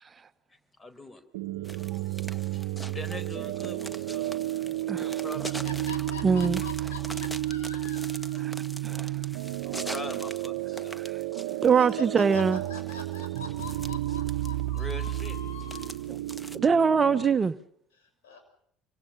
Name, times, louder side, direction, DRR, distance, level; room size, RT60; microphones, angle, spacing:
voice 1, 0.8-1.2 1.8-5.8 9.6-11.0 11.5-11.6 14.7-15.4, left 2 dB, 25° left, 4.6 m, -43 dB
sound 1, 1.3-17.4, right 15 dB, 75° right, 0.9 m, -32 dB
sound 2, 1.6-16.6, equal, 5° left, 1.5 m, -44 dB
voice 2, 5.4-8.4 10.6-11.0 11.7-15.9 17.9-18.4, left 4 dB, 75° left, 6.3 m, -44 dB
voice 3, 6.2-6.6 9.0-9.1 11.6-12.6 16.5-17.5, right 6 dB, 30° right, 1.1 m, -22 dB
27.0 x 25.0 x 5.6 m
hypercardioid pair, 65°, 0 cm